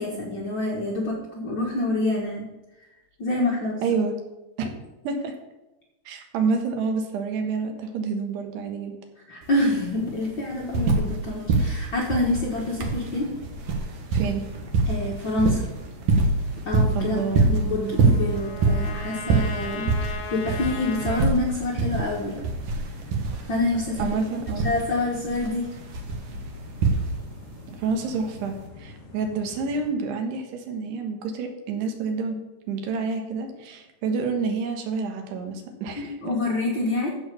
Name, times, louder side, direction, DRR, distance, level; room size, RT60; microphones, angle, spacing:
voice 1, 0.0-2.5 3.2-3.8 9.3-13.3 14.9-15.6 16.6-22.5 23.5-24.2 24.6-25.7 35.9-37.1, left 2 dB, 80° left, -3 dB, 1.0 m, -27 dB
voice 2, 3.8-4.1 4.6-4.7 5.1-5.3 6.1-9.0 14.1-14.4 16.9-17.4 24.0-24.7 27.8-32.4 32.7-36.2, right 4 dB, 85° right, 4 dB, 3.5 m, -28 dB
sound 1, 9.4-9.5 9.8-11.2 11.5-27.5 28.5-28.6, right 3 dB, 60° right, 2.4 m, -25 dB
sound 2, 12.1-29.9, left 3 dB, 45° left, 1.9 m, -45 dB
Trumpet, 16.9-21.3, left 3 dB, 60° left, 2.8 m, -38 dB
14.5 x 4.8 x 6.9 m, 1.0 s
omnidirectional pair, 4.6 m